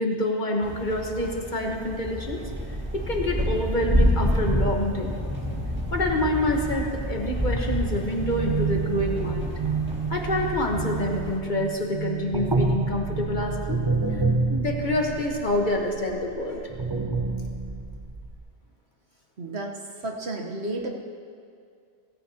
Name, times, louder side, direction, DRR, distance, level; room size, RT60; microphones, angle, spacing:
voice 1, 0.0-2.4 2.9-5.2 5.9-9.5 10.1-13.8 14.1-14.2 14.5-16.6, left 1 dB, 45° left, 1 dB, 1.4 m, -27 dB
sound 1, 0.6-11.4, equal, 10° right, 1.9 m, -28 dB
sound 2, 5.6-11.7 11.9-18.4, right 3 dB, 25° right, 0.9 m, -29 dB
sound 3, 7.6-15.3, right 7 dB, 85° right, 2.5 m, -33 dB
voice 2, 19.4-20.9, right 2 dB, 70° right, 1 dB, 1.4 m, -32 dB
17.0 x 16.0 x 2.9 m, 2.3 s
omnidirectional pair, 1.1 m